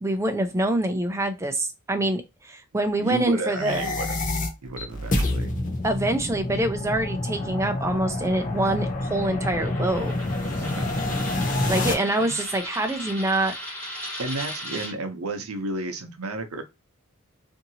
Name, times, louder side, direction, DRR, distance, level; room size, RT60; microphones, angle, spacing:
voice 1, 0.0-3.9 5.8-10.1 11.7-13.5, right 1 dB, 15° right, 0.4 m, -25 dB
voice 2, 3.0-4.2 4.6-5.5 10.5-11.5 12.2-12.3 14.2-16.6, right 2 dB, 80° right, 0.7 m, -32 dB
sound 1, 3.4-11.9, left 2 dB, 35° left, 0.6 m, -28 dB
Coin (dropping), 9.4-14.9, equal, 10° left, 1.4 m, -37 dB
2.8 x 2.6 x 2.7 m
head